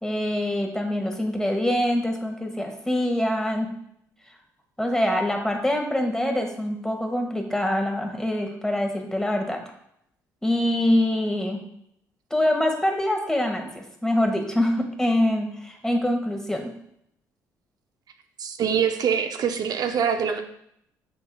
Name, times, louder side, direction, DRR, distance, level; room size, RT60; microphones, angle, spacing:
voice 1, 0.0-3.7 4.8-9.6 10.4-11.6 12.3-16.7, left 1 dB, 5° left, 3 dB, 1.1 m, -24 dB
voice 2, 18.4-20.4, right 7 dB, 55° right, 7 dB, 0.5 m, -24 dB
6.3 x 3.8 x 2.2 m, 0.74 s
hypercardioid pair, 55°, 8 cm